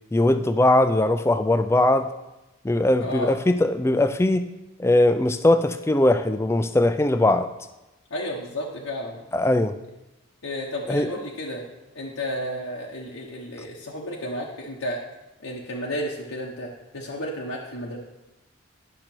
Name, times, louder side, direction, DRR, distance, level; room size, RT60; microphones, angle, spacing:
voice 1, 0.1-2.1 2.6-4.5 4.8-7.5 9.3-9.7 10.9-11.1, left 1 dB, 10° left, 10 dB, 0.3 m, -20 dB
voice 2, 3.0-3.3 8.1-9.2 10.4-11.6 11.9-15.0 15.4-18.0, equal, 80° left, -3 dB, 1.0 m, -32 dB
10.5 x 6.3 x 4.5 m, 0.99 s
head